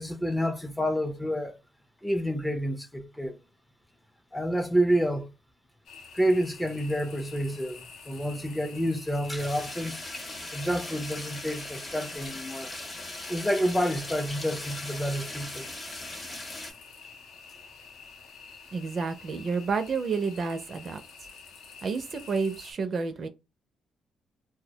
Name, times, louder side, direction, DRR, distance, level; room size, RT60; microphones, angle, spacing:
voice 1, 0.0-1.5 2.0-3.4 4.3-5.3 6.1-10.0 10.5-12.7 13.3-15.7, equal, 10° left, 0.4 m, -29 dB
sound 1, 5.8-22.7, left 5 dB, 70° left, 0.6 m, -49 dB
sound 2, 9.4-16.7, left 2 dB, 30° left, 0.8 m, -39 dB
voice 2, 18.7-21.0 21.8-23.3, right 4 dB, 50° right, 0.4 m, -30 dB
2.2 x 2.0 x 2.7 m
cardioid pair, 90°, 0 cm